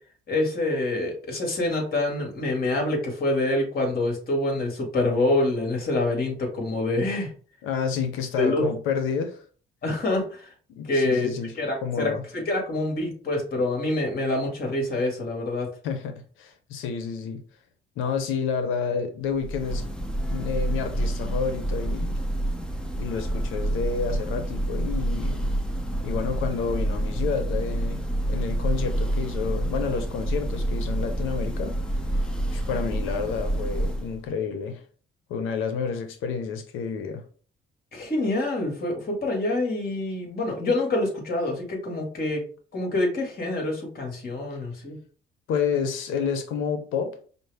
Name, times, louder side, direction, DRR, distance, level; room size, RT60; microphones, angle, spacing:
voice 1, 0.3-7.3 8.4-8.7 9.8-10.5 10.9-15.7 37.9-42.4 42.7-45.0, left 2 dB, 50° left, 1.8 m, -26 dB
voice 2, 7.6-9.4 10.7-11.5 11.8-12.2 15.8-17.4 18.0-19.8 20.2-22.2 23.0-25.5 26.0-28.0 28.3-31.7 32.1-34.8 35.3-37.2 45.5-47.2, left 6 dB, 90° left, 0.6 m, -29 dB
Church bell, 19.3-34.3, right 1 dB, 5° left, 0.7 m, -28 dB
5.3 x 2.0 x 3.4 m
cardioid pair, 90°, 20 cm